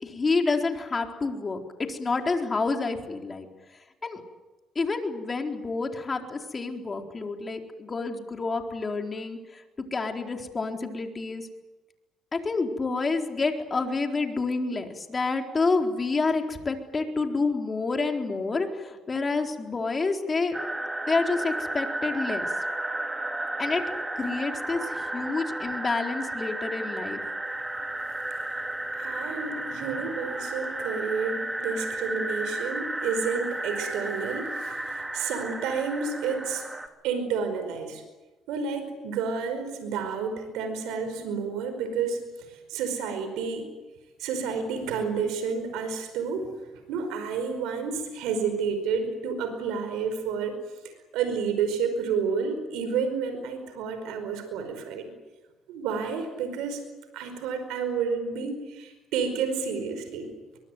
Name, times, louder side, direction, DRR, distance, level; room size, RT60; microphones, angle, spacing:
voice 1, 0.0-1.6 1.9-3.5 4.0-4.2 4.8-9.6 9.9-11.5 12.3-20.6 21.1-22.5 23.6-23.8 24.2-27.2, left 3 dB, 30° left, 4 dB, 4.1 m, -28 dB
sound 1, 20.5-36.9, right 1 dB, 15° right, 2.8 m, -33 dB
voice 2, 28.9-36.6 37.0-38.0 38.5-43.7 44.2-46.5 46.9-50.6 51.1-55.1 55.7-56.8 57.1-60.3, right 5 dB, 90° right, 8 dB, 5.1 m, -30 dB
23.0 x 23.0 x 9.3 m, 1.2 s
cardioid pair, 90°, 0 cm